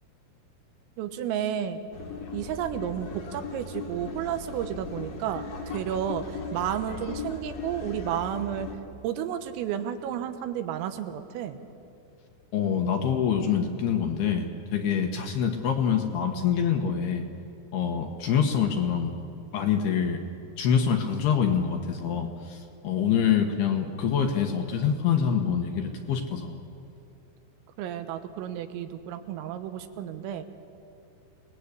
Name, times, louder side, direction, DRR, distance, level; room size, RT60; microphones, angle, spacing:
voice 1, 1.0-1.8 2.3-8.7 9.0-11.6 27.8-30.4, right 10 dB, 85° right, 9 dB, 3.9 m, -32 dB
sound 1, 1.9-8.7, left 4 dB, 50° left, 2.1 m, -38 dB
voice 2, 12.5-17.2 17.7-19.1 19.5-20.2 20.6-26.6, left 7 dB, 70° left, 4 dB, 2.7 m, -25 dB
28.0 x 20.0 x 8.4 m, 2.5 s
omnidirectional pair, 5.8 m